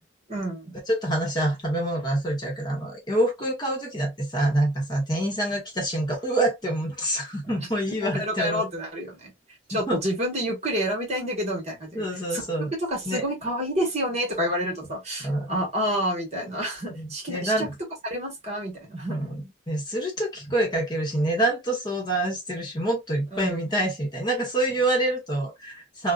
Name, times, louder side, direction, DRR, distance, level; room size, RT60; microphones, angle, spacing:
voice 1, 0.3-0.8 7.5-7.7 8.0-9.3 9.7-12.4 12.8-17.7 18.0-19.2 23.3-23.6, equal, 35° right, 1.2 m, -29 dB
voice 2, 0.9-8.7 9.7-10.0 11.9-12.7 13.1-13.2 15.2-15.6 16.9-17.7 19.1-26.1, right 1 dB, 25° left, 0.9 m, -26 dB
2.5 x 2.1 x 2.3 m
head